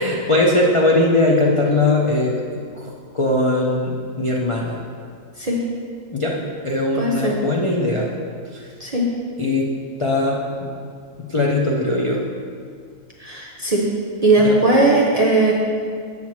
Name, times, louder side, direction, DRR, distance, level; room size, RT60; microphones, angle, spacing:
voice 1, 0.0-2.4 2.7-4.8 6.1-6.4 6.6-8.1 8.5-8.7 9.4-9.7 10.0-10.7 11.3-12.2 14.4-14.6, left 2 dB, 55° left, -3 dB, 0.3 m, -20 dB
voice 2, 6.9-7.4 8.8-9.1 13.2-13.9 14.2-15.5, right 2 dB, 45° right, -3 dB, 0.5 m, -18 dB
7.3 x 7.1 x 3.1 m, 2.1 s
omnidirectional pair, 1.4 m